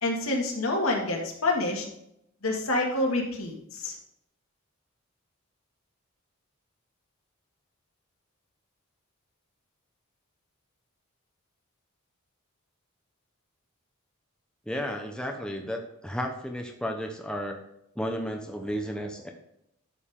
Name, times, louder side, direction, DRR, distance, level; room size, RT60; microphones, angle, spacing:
voice 1, 0.0-1.9 2.4-3.9, left 2 dB, 80° left, 0 dB, 2.2 m, -27 dB
voice 2, 14.7-17.6 18.0-19.3, equal, 5° left, 2 dB, 0.8 m, -33 dB
11.0 x 6.9 x 3.7 m, 0.77 s
head